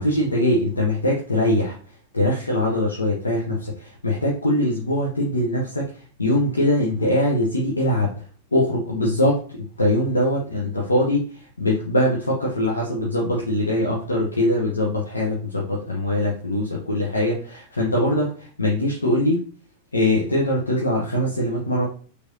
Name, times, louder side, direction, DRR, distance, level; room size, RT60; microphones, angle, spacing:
voice 1, 0.0-8.1 8.5-19.4 19.9-21.9, left 1 dB, 80° left, -3 dB, 0.8 m, -22 dB
4.7 x 3.4 x 2.6 m, 0.42 s
figure-of-eight pair, 90°, 0 cm